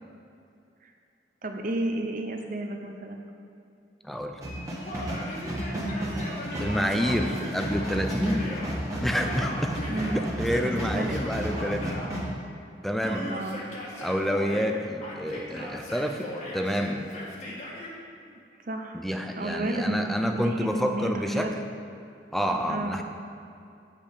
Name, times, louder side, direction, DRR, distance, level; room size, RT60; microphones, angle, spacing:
voice 1, 1.4-3.2 5.7-6.0 9.9-10.2 10.6-11.2 13.2-13.6 18.3-19.0 19.4-21.5 22.7-23.0, right 2 dB, 50° right, 3 dB, 0.8 m, -32 dB
voice 2, 4.0-4.4 6.6-8.5 9.0-9.7 10.1-12.0 12.8-13.4 14.0-17.1 18.9-21.6 22.3-23.0, equal, ahead, 4 dB, 0.5 m, -28 dB
sound 1, 4.4-12.3, equal, 20° right, 1.8 m, -32 dB
Yell, 4.8-8.7 9.2-12.1 13.0-14.7 15.0-17.9, equal, 45° left, 1.7 m, -38 dB
8.5 x 5.1 x 7.3 m, 2.6 s
head